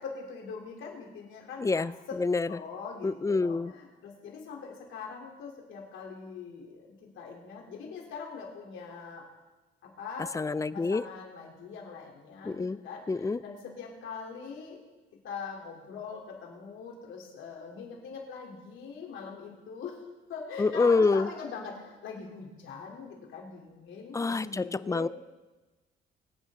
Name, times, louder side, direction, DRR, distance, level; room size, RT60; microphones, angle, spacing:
voice 1, 0.0-2.2 2.5-9.3 9.8-10.4 10.7-14.8 15.2-20.0 20.3-25.0, left 5 dB, 80° left, 0 dB, 3.6 m, -42 dB
voice 2, 1.6-2.5 3.0-3.7 10.3-11.0 12.4-12.8 13.1-13.4 20.6-21.3 24.1-25.1, left 4 dB, 15° left, 17 dB, 0.4 m, -26 dB
23.5 x 9.3 x 3.8 m, 1.2 s
cardioid pair, 90°, 20 cm